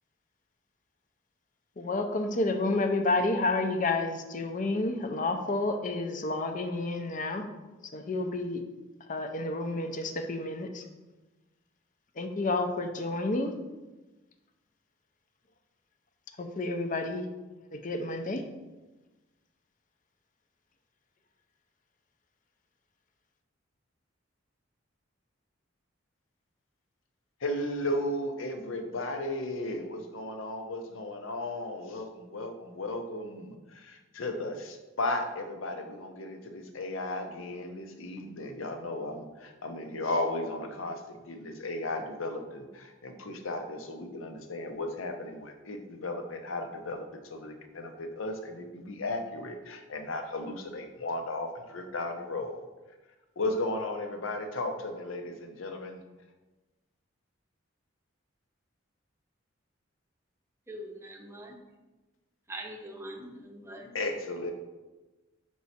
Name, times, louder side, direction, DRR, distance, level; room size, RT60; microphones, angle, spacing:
voice 1, 1.8-7.5 7.9-8.6 9.1-10.8 12.2-13.5 16.4-17.3 17.7-18.4, left 2 dB, 40° left, 6 dB, 0.6 m, -30 dB
voice 2, 27.4-41.0 41.3-52.6 53.4-56.0 63.9-64.5, left 2 dB, 80° left, 5 dB, 0.8 m, -35 dB
voice 3, 60.7-61.6 62.5-63.9, right 1 dB, 15° right, 2 dB, 0.7 m, -43 dB
5.5 x 4.7 x 4.2 m, 1.2 s
head